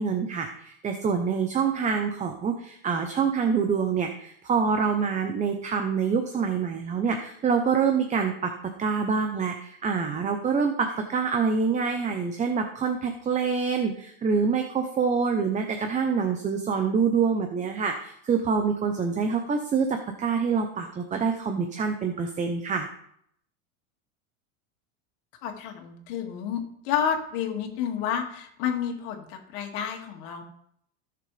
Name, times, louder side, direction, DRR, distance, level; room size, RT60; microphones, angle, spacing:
voice 1, 0.0-8.5 8.8-22.9, right 5 dB, 20° right, 5 dB, 0.8 m, -26 dB
voice 2, 25.4-30.4, left 8 dB, 65° left, 2 dB, 2.5 m, -30 dB
16.5 x 6.8 x 3.5 m, 0.69 s
supercardioid pair, 150°, 39 cm